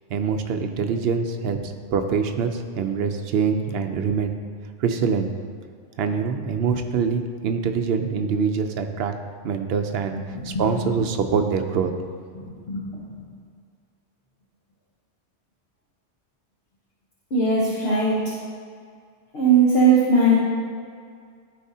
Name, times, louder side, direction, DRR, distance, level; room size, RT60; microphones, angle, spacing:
voice 1, 0.1-4.3 4.8-5.3 6.0-9.1 9.4-10.1 10.4-11.9, right 6 dB, 65° right, 6 dB, 0.8 m, -24 dB
voice 2, 10.3-10.6 12.3-12.9 17.3-18.2 19.3-20.3, right 3 dB, 60° left, -7 dB, 1.3 m, -19 dB
13.5 x 4.7 x 2.8 m, 2.2 s
omnidirectional pair, 1.2 m